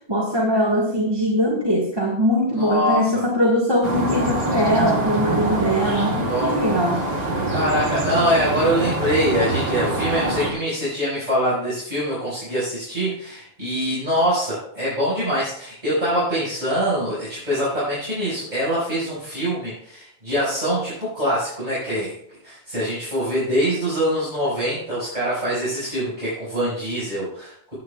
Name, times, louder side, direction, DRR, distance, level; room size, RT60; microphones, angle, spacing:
voice 1, 0.0-7.0, equal, 20° right, -3 dB, 1.7 m, -21 dB
voice 2, 2.5-3.2 5.7-6.5 7.5-22.1 22.4-27.7, equal, 45° right, -10 dB, 5.6 m, -24 dB
sound 1, 3.8-10.5, right 2 dB, 65° right, 2.1 m, -24 dB
17.0 x 9.5 x 2.4 m, 0.69 s
omnidirectional pair, 1.1 m